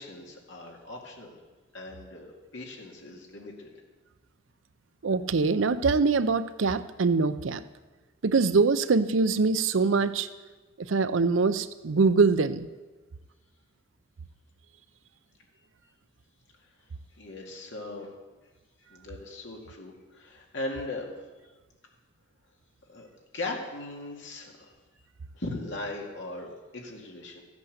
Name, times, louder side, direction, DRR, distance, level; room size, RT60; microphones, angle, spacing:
voice 1, 0.0-1.4 1.7-3.7 17.2-18.1 18.9-21.2 22.9-23.1 23.3-24.8 25.3-27.4, left 2 dB, 70° left, 0 dB, 2.2 m, -39 dB
voice 2, 5.0-7.6 8.2-10.3 10.9-12.7, right 4 dB, 80° right, 13 dB, 0.6 m, -23 dB
14.0 x 8.3 x 6.5 m, 1.2 s
head